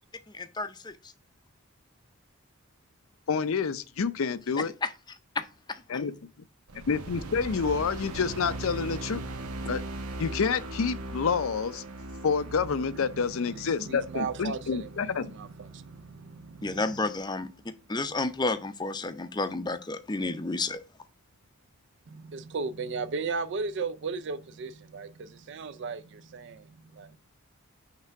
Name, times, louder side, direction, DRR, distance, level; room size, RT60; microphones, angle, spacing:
voice 1, 0.4-0.7 16.6-17.5 17.9-20.8, left 3 dB, 20° left, 0.5 m, -30 dB
voice 2, 3.3-4.7 5.9-6.1 6.9-9.2 9.7-9.8 10.2-11.8 12.2-15.3, left 5 dB, 65° left, 0.5 m, -28 dB
sound 1, 6.7-17.2, right 1 dB, 90° right, 0.9 m, -40 dB
voice 3, 13.1-17.1 22.1-27.2, right 4 dB, 55° right, 0.4 m, -36 dB
5.9 x 3.4 x 5.7 m
head